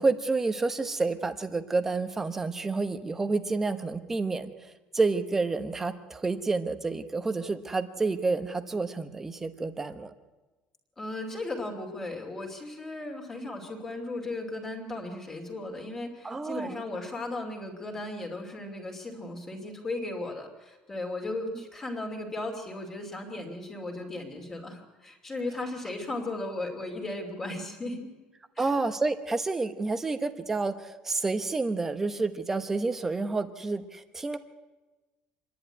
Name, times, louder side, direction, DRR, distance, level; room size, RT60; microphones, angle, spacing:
voice 1, 0.0-10.1 16.2-16.8 21.5-21.6 28.6-34.4, right 3 dB, 10° right, 10 dB, 0.9 m, -29 dB
voice 2, 11.0-28.1 28.5-28.8, left 2 dB, 15° left, 1 dB, 2.6 m, -36 dB
26.0 x 11.0 x 9.8 m, 1.2 s
cardioid pair, 180°, 3 cm